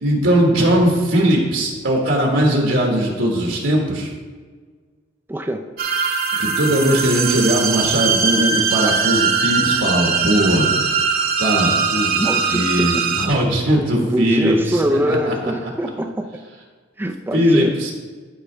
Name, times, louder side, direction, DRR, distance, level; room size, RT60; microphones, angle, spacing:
voice 1, 0.0-4.1 6.4-10.9 11.4-12.2 12.5-15.7 17.3-17.9, equal, 75° right, -1 dB, 1.5 m, -19 dB
voice 2, 5.3-5.7 12.2-13.1 13.9-16.4 17.0-17.7, equal, 10° right, 3 dB, 0.4 m, -23 dB
sound 1, 5.8-13.3, right 5 dB, 55° right, 1.0 m, -20 dB
12.0 x 5.5 x 3.3 m, 1.5 s
head